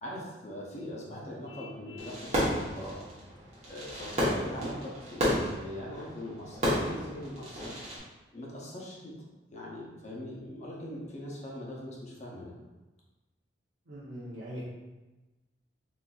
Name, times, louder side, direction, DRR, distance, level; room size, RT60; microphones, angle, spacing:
voice 1, 0.0-3.0 3.6-7.7 8.0-9.1 9.5-12.5, left 1 dB, 35° left, -4 dB, 0.7 m, -41 dB
Vehicle horn car horn honking, 1.4-2.2, left 3 dB, 85° left, 0.7 m, -48 dB
Fireworks, 2.0-8.0, equal, 35° right, 0.9 m, -32 dB
voice 2, 13.9-14.6, equal, 90° right, -7 dB, 0.7 m, -41 dB
4.0 x 2.6 x 2.3 m, 1.1 s
head